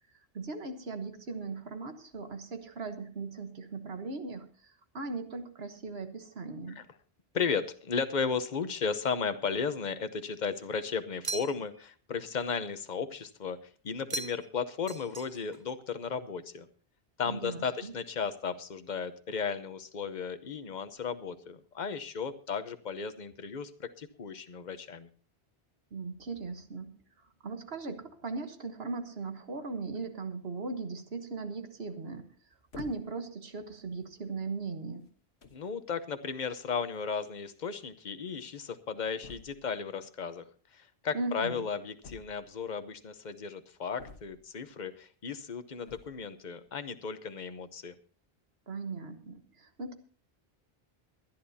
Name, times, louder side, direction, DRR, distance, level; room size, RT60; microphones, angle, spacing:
voice 1, 0.3-4.5 4.9-6.8 17.2-17.9 25.9-26.9 27.4-32.3 32.7-35.0 41.1-41.6 48.7-49.9, right 3 dB, 70° right, 8 dB, 1.6 m, -38 dB
voice 2, 7.3-13.6 13.8-16.7 17.2-25.1 35.5-40.4 40.7-48.0, left 6 dB, 45° left, 11 dB, 1.0 m, -35 dB
sound 1, 11.2-11.9 14.1-14.6 14.9-15.6, right 3 dB, 35° right, 0.4 m, -39 dB
sound 2, 32.7-33.3 34.1-34.3 35.1-35.2 35.4-35.7 36.9-37.0 37.2-37.3 37.6-37.7 39.2-39.7 42.0-42.7 44.0-44.6 45.8-46.3, left 4 dB, 75° left, 1.6 m, -49 dB
23.0 x 10.5 x 2.8 m, 0.41 s
omnidirectional pair, 1.1 m